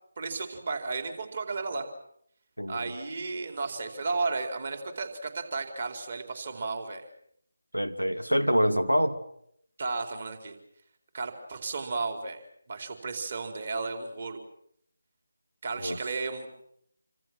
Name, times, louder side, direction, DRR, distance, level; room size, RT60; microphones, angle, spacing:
voice 1, 0.2-1.9 2.7-7.0 9.8-10.6 11.1-12.4 12.7-14.4 15.6-16.5, right 3 dB, 40° right, 6 dB, 4.3 m, -33 dB
voice 2, 2.6-2.9 7.7-9.2 15.8-16.0, equal, 85° right, 10 dB, 2.7 m, -26 dB
28.0 x 26.0 x 6.2 m, 0.71 s
figure-of-eight pair, 155°, 0 cm